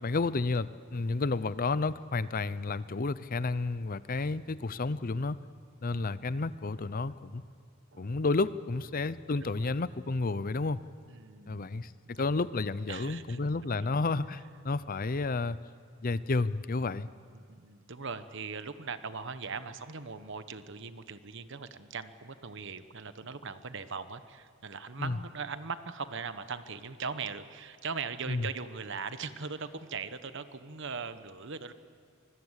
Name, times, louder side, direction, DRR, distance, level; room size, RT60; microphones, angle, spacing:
voice 1, 0.0-5.4 5.8-7.4 8.0-10.8 11.5-15.6 16.0-17.1 25.0-25.2 28.3-28.5, left 3 dB, 40° left, 16 dB, 0.6 m, -31 dB
voice 2, 11.1-11.7 12.1-12.2 12.9-13.9 17.3-31.7, right 5 dB, 60° right, 11 dB, 1.1 m, -40 dB
25.5 x 21.0 x 8.2 m, 2.5 s
head